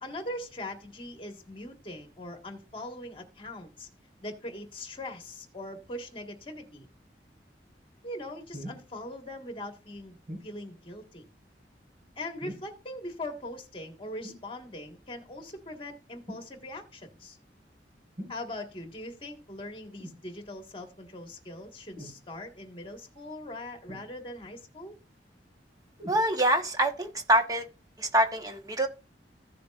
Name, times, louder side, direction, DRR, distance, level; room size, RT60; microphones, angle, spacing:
voice 1, 0.0-3.9 4.2-6.9 8.0-11.2 12.2-17.4 18.3-25.0, left 1 dB, 30° left, 1.8 m, -41 dB
sound 1, 8.5-8.9 10.3-10.5 12.4-12.8 14.2-14.5 16.3-16.5 18.2-18.4 20.0-20.2 21.9-22.2 23.9-24.4 26.0-26.3 27.1-27.2, equal, 55° right, 5.2 m, -42 dB
voice 2, 26.1-27.6 28.0-28.9, right 1 dB, 20° right, 1.3 m, -25 dB
15.0 x 6.8 x 2.5 m
head